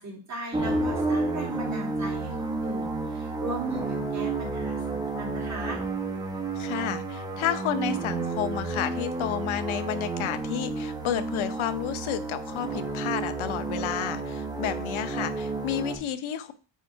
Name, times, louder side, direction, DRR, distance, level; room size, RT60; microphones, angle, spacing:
voice 1, 0.0-5.8, right 1 dB, 35° right, -1 dB, 2.7 m, -37 dB
sound 1, 0.5-15.9, right 3 dB, 10° right, 1.3 m, -31 dB
voice 2, 6.5-16.5, left 11 dB, 90° left, 12 dB, 0.8 m, -31 dB
8.4 x 3.6 x 4.5 m, 0.35 s
cardioid pair, 140°, 47 cm